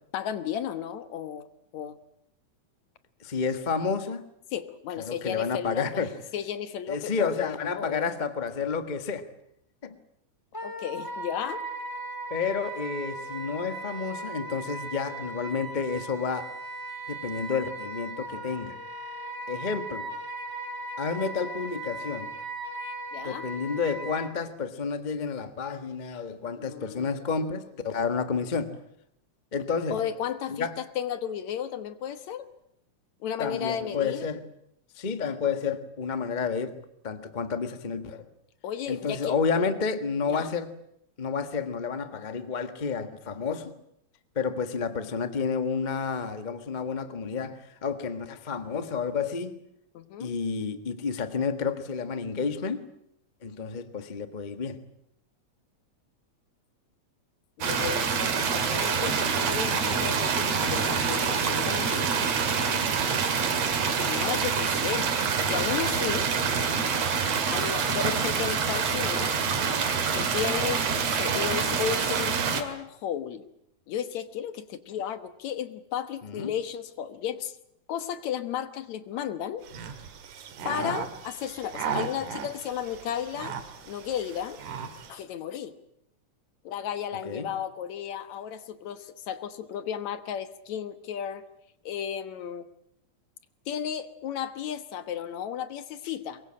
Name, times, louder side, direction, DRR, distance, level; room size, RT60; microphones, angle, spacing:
voice 1, 0.1-1.5 1.7-2.0 4.5-6.0 6.3-8.1 10.6-11.6 23.1-23.5 26.6-27.2 29.9-32.5 33.2-34.3 38.6-39.3 40.2-40.5 49.9-50.3 57.7-62.4 64.0-65.1 65.5-66.3 67.5-69.4 70.1-73.4 73.9-77.6 77.9-79.6 80.6-83.5 83.9-84.6 85.1-85.8 86.6-91.4 91.9-92.7 93.7-96.4, left 9 dB, 70° left, 2.5 m, -34 dB
voice 2, 3.2-4.3 5.0-6.1 6.9-9.3 9.8-10.0 12.3-16.5 17.1-18.8 19.5-20.1 21.0-22.3 23.2-28.7 29.5-30.0 30.5-30.7 33.4-34.4 35.0-36.7 37.0-38.3 38.9-40.7 41.2-43.7 44.3-49.5 50.2-52.8 53.4-54.8 70.0-70.3 76.2-76.5 80.7-81.0 87.2-87.5, left 5 dB, 30° left, 0.9 m, -30 dB
Wind instrument woodwind instrument, 10.5-24.3, right 1 dB, 5° left, 2.5 m, -38 dB
sound 1, 57.6-72.6, right 6 dB, 60° right, 3.1 m, -26 dB
sound 2, 79.6-85.2, right 7 dB, 80° right, 3.3 m, -37 dB
23.5 x 22.0 x 8.7 m
omnidirectional pair, 3.4 m